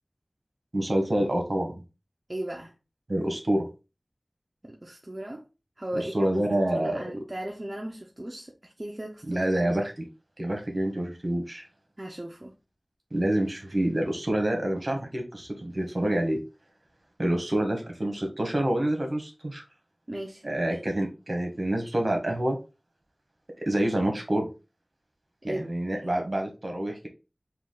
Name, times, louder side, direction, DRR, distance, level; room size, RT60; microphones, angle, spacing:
voice 1, 0.7-1.7 3.1-3.7 5.9-7.2 9.3-10.0 10.4-11.6 13.1-16.4 17.2-19.6 20.4-22.6 23.6-24.5 25.4-27.1, right 1 dB, 55° right, 1.3 m, -27 dB
voice 2, 2.3-2.7 4.7-5.4 5.8-6.3 6.7-9.4 12.0-12.5 20.1-20.4 25.4-25.7, right 1 dB, 35° right, 0.7 m, -36 dB
4.6 x 2.4 x 3.8 m
wide cardioid pair, 50°, 0 cm